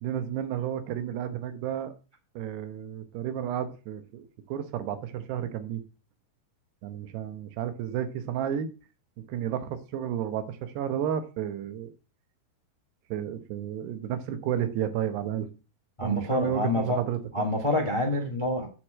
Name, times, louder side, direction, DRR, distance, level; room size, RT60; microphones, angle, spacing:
voice 1, 0.0-1.9 2.4-5.8 6.8-8.7 9.3-11.9 13.1-15.5 16.0-17.5, right 10 dB, 90° right, 10 dB, 3.2 m, -32 dB
voice 2, 16.0-17.0 17.3-18.7, left 1 dB, 40° left, 4 dB, 0.4 m, -27 dB
9.3 x 5.0 x 7.6 m, 0.33 s
omnidirectional pair, 4.6 m